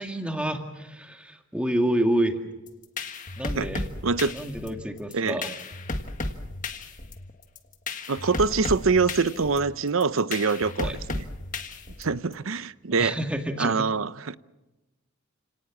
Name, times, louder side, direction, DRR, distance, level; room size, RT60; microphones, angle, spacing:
voice 1, 0.0-2.4 3.4-3.9 4.3-5.5 10.8-11.0 12.9-13.9, right 1 dB, 5° right, 4 dB, 2.1 m, -28 dB
sound 1, 2.7-12.3, left 2 dB, 40° left, 1.6 m, -34 dB
voice 2, 4.0-4.3 5.1-5.4 8.1-11.2 12.0-13.1 13.6-14.4, right 4 dB, 80° right, 16 dB, 0.7 m, -24 dB
30.0 x 18.5 x 7.4 m, 1.1 s
head